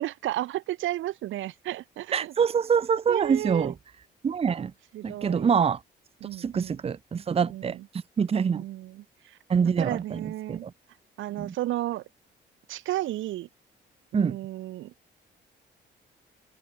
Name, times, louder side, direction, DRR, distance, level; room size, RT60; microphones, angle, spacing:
voice 1, 0.0-2.3 3.1-3.7 4.6-4.7 4.9-5.5 6.2-6.8 7.5-7.9 8.4-9.4 9.8-10.7 11.2-12.0 12.7-13.5 14.1-14.9, right 15 dB, 75° right, 0.7 m, -33 dB
voice 2, 2.1-3.7 4.2-4.7 5.0-5.8 6.4-7.8 8.2-8.6 9.5-10.7 11.4-11.5 14.1-14.4, right 6 dB, 30° right, 0.6 m, -25 dB
cardioid pair, 90°, 20 cm